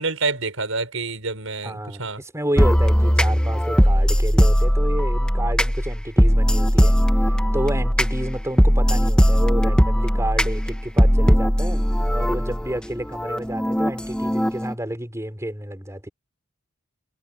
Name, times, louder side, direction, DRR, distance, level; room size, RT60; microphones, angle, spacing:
voice 1, 0.0-2.2, right 3 dB, 85° right, 6.2 m, -27 dB
voice 2, 1.6-16.1, right 1 dB, 15° right, 5.0 m, -30 dB
sound 1, 2.6-14.7, equal, 5° left, 1.3 m, -19 dB
head